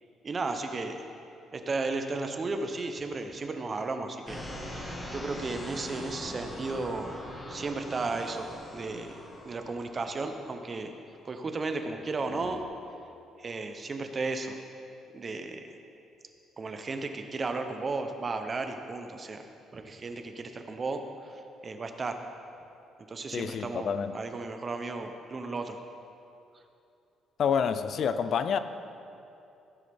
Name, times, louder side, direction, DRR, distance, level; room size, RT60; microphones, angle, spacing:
voice 1, 0.2-1.0 1.5-7.2 7.5-8.5 8.7-9.2 9.5-10.9 11.2-12.6 13.4-14.6 15.1-15.7 16.6-19.4 19.7-22.2 23.1-25.8, right 3 dB, 25° right, 6 dB, 0.7 m, -34 dB
sound 1, 4.3-11.5 12.1-12.6, left 1 dB, 15° left, 1.5 m, -42 dB
voice 2, 23.3-24.1 27.4-28.6, left 7 dB, 45° left, 11 dB, 0.5 m, -28 dB
16.0 x 10.0 x 3.5 m, 2.7 s
cardioid pair, 150°, 0 cm